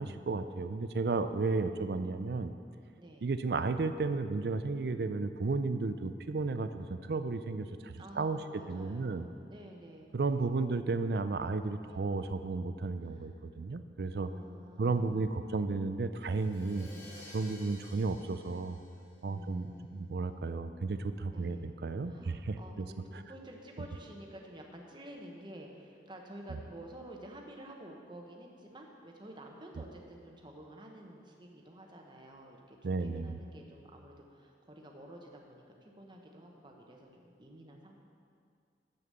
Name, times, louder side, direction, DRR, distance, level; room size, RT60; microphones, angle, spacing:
voice 1, 0.0-2.5 3.2-8.4 8.7-9.3 10.1-14.3 14.8-16.9 17.3-18.8 19.2-22.9 32.8-33.4, right 3 dB, 60° right, 10 dB, 0.4 m, -33 dB
voice 2, 2.9-3.3 8.0-10.9 11.8-12.1 13.0-13.4 14.1-15.6 16.7-17.2 19.2-20.1 21.3-21.7 22.0-38.0, right 1 dB, 25° right, 1 dB, 1.0 m, -51 dB
Crash cymbal, 16.2-20.0, left 1 dB, 80° left, 2.1 m, -54 dB
7.0 x 6.7 x 7.5 m, 2.3 s
head